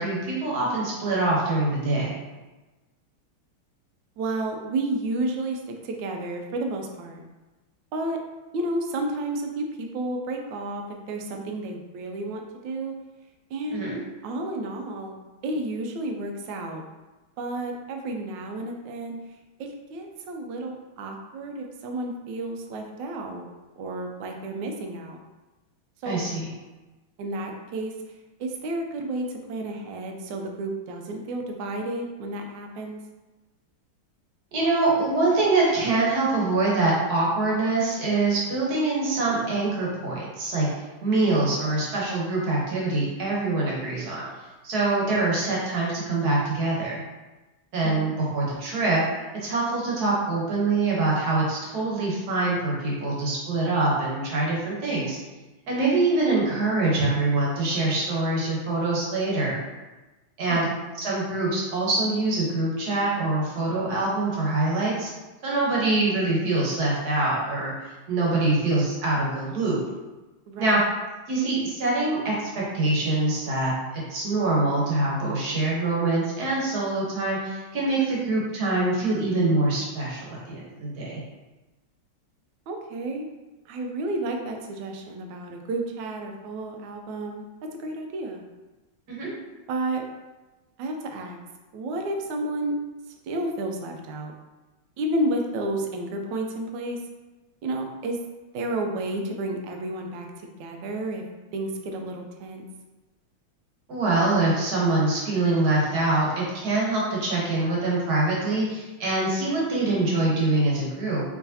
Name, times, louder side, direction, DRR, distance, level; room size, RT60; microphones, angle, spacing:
voice 1, 0.0-2.2 13.7-14.0 26.1-26.5 34.5-40.7 41.0-44.3 44.6-47.0 47.7-49.0 49.4-55.2 55.7-59.6 60.4-60.7 60.9-65.1 65.4-69.8 70.6-70.8 71.3-81.2 89.1-89.3 103.9-111.2, right 2 dB, 55° right, -4 dB, 1.4 m, -24 dB
voice 2, 4.2-7.2 7.9-8.2 8.5-12.9 13.5-13.9 14.2-15.1 15.4-16.8 17.4-19.2 19.6-23.5 23.8-25.2 26.0-26.2 27.2-27.9 28.4-33.0 41.1-41.4 47.8-48.1 60.5-60.8 70.5-70.8 82.7-83.3 83.7-88.5 89.7-90.0 90.8-91.4 91.7-92.8 93.2-94.3 95.0-97.0 97.6-98.2 98.5-100.3 100.6-101.2 101.5-102.6, right 1 dB, 75° right, 3 dB, 1.2 m, -31 dB
4.6 x 3.1 x 2.7 m, 1.1 s
omnidirectional pair, 2.3 m